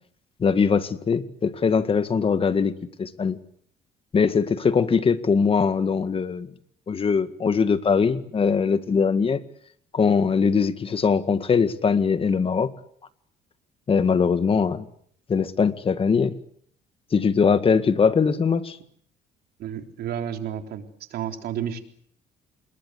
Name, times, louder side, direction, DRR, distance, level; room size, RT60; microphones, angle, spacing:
voice 1, 0.4-3.4 4.1-6.5 6.9-9.4 9.9-12.7 13.9-14.9 15.3-16.4 17.1-18.8, left 5 dB, 35° left, 11 dB, 1.9 m, -21 dB
voice 2, 19.6-20.8 21.1-21.8, right 9 dB, 70° right, 5 dB, 3.9 m, -31 dB
27.0 x 21.5 x 8.2 m, 0.64 s
cardioid pair, 110°, 17 cm